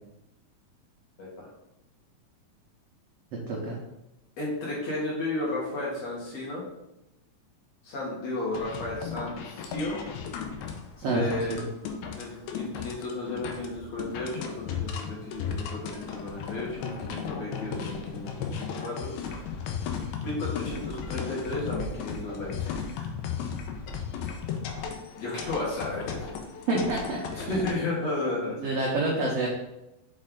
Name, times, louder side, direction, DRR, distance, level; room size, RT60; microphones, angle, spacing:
voice 1, 1.2-1.5 4.4-6.6 7.8-10.0 11.1-11.6 12.2-19.4 19.7-19.9 20.2-23.1 25.2-26.4 27.3-28.6, left 2 dB, 55° left, -5 dB, 2.4 m, -34 dB
voice 2, 3.5-3.8 11.0-11.2 11.5-11.6 26.7-27.9 28.6-29.5, right 2 dB, 75° right, -3 dB, 1.5 m, -28 dB
sound 1, 8.5-27.7, left 6 dB, 85° left, 2.5 m, -35 dB
5.9 x 4.4 x 3.8 m, 0.90 s
omnidirectional pair, 4.1 m